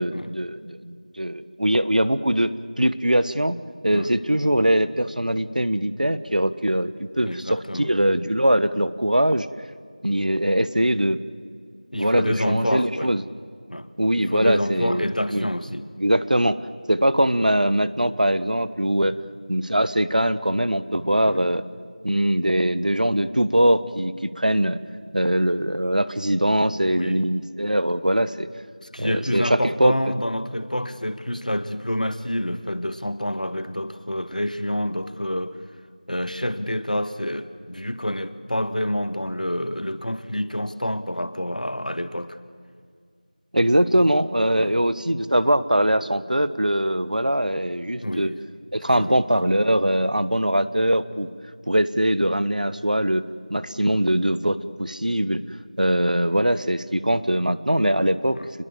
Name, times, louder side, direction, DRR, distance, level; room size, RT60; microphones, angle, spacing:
voice 1, 0.0-2.5 2.8-3.5 3.8-9.5 10.0-11.2 11.9-13.2 14.0-15.5 16.0-16.6 16.9-19.2 19.5-21.6 22.0-24.8 25.1-28.5 29.0-29.9 43.5-48.3 48.7-51.3 51.7-53.2 53.5-55.4 55.8-58.4, right 1 dB, 70° right, 14 dB, 1.3 m, -22 dB
voice 2, 7.2-7.9 11.9-13.1 13.7-15.9 21.2-21.4 26.9-27.2 28.9-35.6 36.1-42.4 44.6-44.8 48.0-48.4 49.0-49.5 58.3-58.5, equal, 70° left, 11 dB, 1.7 m, -28 dB
29.5 x 21.5 x 7.3 m, 2.1 s
figure-of-eight pair, 180°, 4 cm